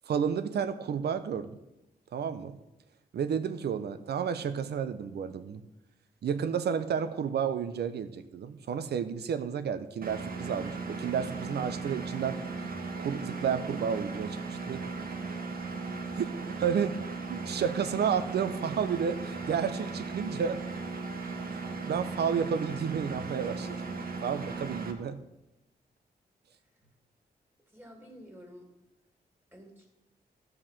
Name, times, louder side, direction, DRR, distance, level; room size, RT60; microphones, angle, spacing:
voice 1, 0.1-1.6 2.1-2.6 3.1-5.6 6.2-12.4 13.0-14.8 16.1-16.3 16.6-17.0 17.3-20.6 21.9-23.8 24.2-25.2, right 7 dB, 80° right, 11 dB, 0.8 m, -31 dB
Engine, 10.0-24.9, right 3 dB, 65° right, 1.3 m, -37 dB
voice 2, 27.7-28.7 29.5-30.0, equal, 15° right, 1 dB, 2.4 m, -51 dB
13.5 x 4.8 x 7.4 m, 0.91 s
wide cardioid pair, 145°, 17 cm